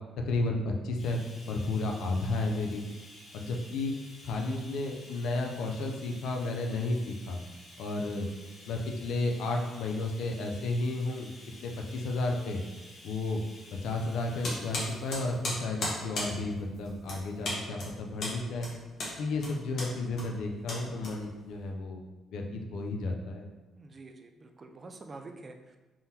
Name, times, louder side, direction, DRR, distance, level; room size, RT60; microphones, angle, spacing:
voice 1, 0.2-1.2 1.5-2.8 3.3-3.9 4.2-7.4 7.8-8.3 8.7-11.3 11.6-12.6 13.0-13.4 13.8-18.7 19.2-22.0 22.3-23.5, left 2 dB, 85° left, 2 dB, 0.4 m, -32 dB
Bathtub (filling or washing), 1.0-17.6 18.5-18.7 19.0-19.1, left 1 dB, 45° left, 1.3 m, -53 dB
sound 1, 14.4-21.6, left 1 dB, 65° left, 1.0 m, -37 dB
voice 2, 23.7-25.8, right 3 dB, 35° right, 5 dB, 0.3 m, -47 dB
3.6 x 2.1 x 2.7 m, 1.1 s
cardioid pair, 90°, 0 cm